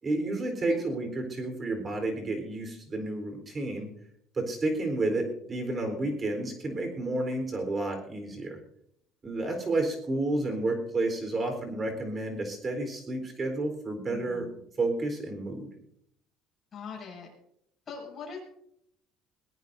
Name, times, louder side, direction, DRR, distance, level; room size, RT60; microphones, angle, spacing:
voice 1, 0.0-3.9 4.3-8.6 9.2-14.5 14.8-15.7, right 2 dB, 25° right, 5 dB, 4.1 m, -31 dB
voice 2, 14.1-14.5 16.7-17.3 17.9-18.4, left 5 dB, 30° left, -2 dB, 7.5 m, -41 dB
22.0 x 18.0 x 2.7 m, 0.73 s
cardioid pair, 135°, 0 cm